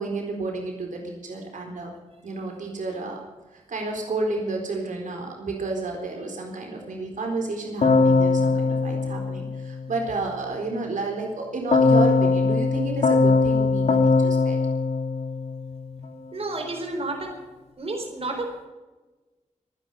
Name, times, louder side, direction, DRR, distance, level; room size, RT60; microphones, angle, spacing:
voice 1, 0.0-1.9 2.2-3.2 3.5-14.6, right 3 dB, 80° right, 1 dB, 4.2 m, -31 dB
Keyboard (musical), 7.8-10.1 11.7-16.0, left 3 dB, 60° left, 3.2 m, -21 dB
voice 2, 16.3-17.3 17.8-18.7, right 2 dB, 50° right, 2 dB, 4.2 m, -31 dB
25.0 x 10.5 x 5.6 m, 1.2 s
wide cardioid pair, 110°, 13 cm